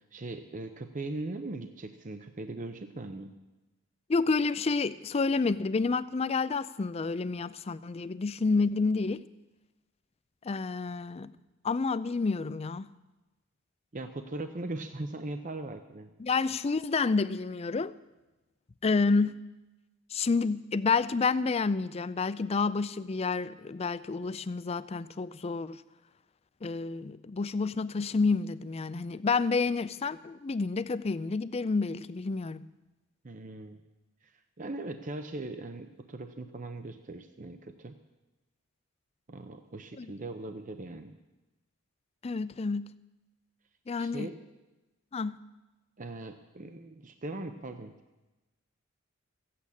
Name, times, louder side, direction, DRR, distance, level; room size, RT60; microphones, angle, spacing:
voice 1, 0.1-3.3 13.9-16.1 33.2-33.8 34.2-38.0 39.3-41.2 44.0-44.4 46.0-48.0, right 2 dB, 40° right, 0.7 m, -40 dB
voice 2, 4.1-9.2 10.4-11.3 11.6-12.9 16.2-17.9 18.8-19.4 20.1-25.8 26.6-32.7 40.0-40.1 42.2-42.9 43.9-44.3 45.1-45.4, left 4 dB, 30° left, 0.4 m, -29 dB
14.5 x 8.5 x 8.5 m
head